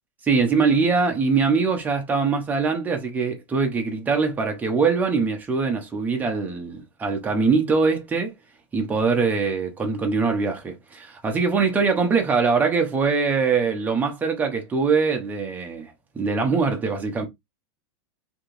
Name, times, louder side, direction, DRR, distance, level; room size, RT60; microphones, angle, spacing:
voice 1, 0.2-8.3 8.7-17.3, right 4 dB, 10° right, 0.7 m, -22 dB
3.3 x 2.8 x 2.6 m
supercardioid pair, 165°, 16 cm